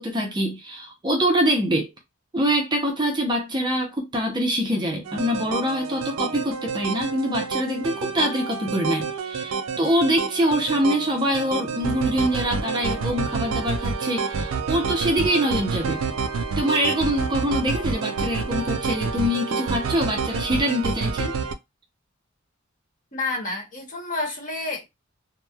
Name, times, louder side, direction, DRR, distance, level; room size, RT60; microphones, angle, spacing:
voice 1, 0.0-1.9 2.3-16.0 16.6-21.3, equal, 20° right, 0.5 m, -24 dB
shit is real, 5.1-21.5, right 5 dB, 80° right, 0.4 m, -28 dB
voice 2, 23.1-24.8, left 2 dB, 40° left, 1.0 m, -29 dB
2.9 x 2.0 x 2.2 m
head